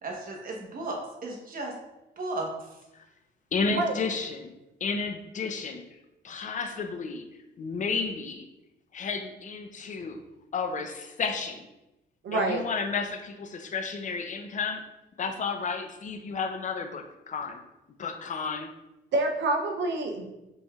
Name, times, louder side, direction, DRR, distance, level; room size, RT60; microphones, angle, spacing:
voice 1, 0.0-1.7 2.2-2.5, right 2 dB, 45° right, 0 dB, 1.1 m, -35 dB
voice 2, 3.5-4.5 4.8-5.8 6.2-7.2 7.6-8.5 8.9-10.2 10.5-11.7 12.3-14.8 15.2-17.6 18.0-18.7, left 5 dB, 40° left, 6 dB, 0.5 m, -32 dB
voice 3, 12.2-12.6 19.1-20.3, right 2 dB, 65° right, 3 dB, 0.6 m, -27 dB
5.1 x 3.2 x 2.4 m, 0.95 s
cardioid pair, 90°, 20 cm